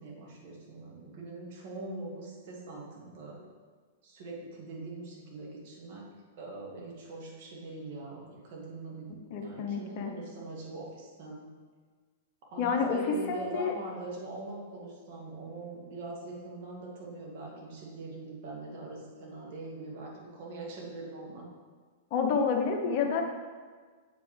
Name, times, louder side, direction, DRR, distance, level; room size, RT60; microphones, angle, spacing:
voice 1, 0.0-3.4 4.0-11.5 12.5-21.5, right 2 dB, 55° right, -2 dB, 1.8 m, -43 dB
voice 2, 9.3-10.1 12.6-13.7 22.1-23.2, left 5 dB, 45° left, 3 dB, 0.9 m, -29 dB
7.7 x 5.1 x 3.3 m, 1.5 s
hypercardioid pair, 105°, 0 cm